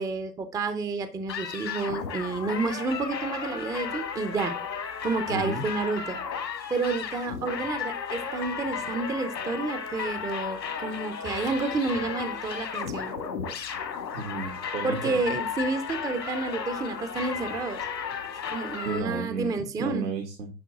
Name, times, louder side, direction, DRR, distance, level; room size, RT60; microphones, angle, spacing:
voice 1, 0.0-4.5 5.0-6.2 6.7-13.2 14.8-17.8 18.5-20.1, right 3 dB, 5° right, 10 dB, 0.6 m, -30 dB
sound 1, 1.3-19.0, left 6 dB, 85° left, 2.2 m, -34 dB
voice 2, 5.3-5.7 14.1-15.2 18.8-20.5, right 4 dB, 85° right, 2 dB, 2.1 m, -33 dB
10.5 x 5.2 x 3.6 m, 0.31 s
hypercardioid pair, 110°, 49 cm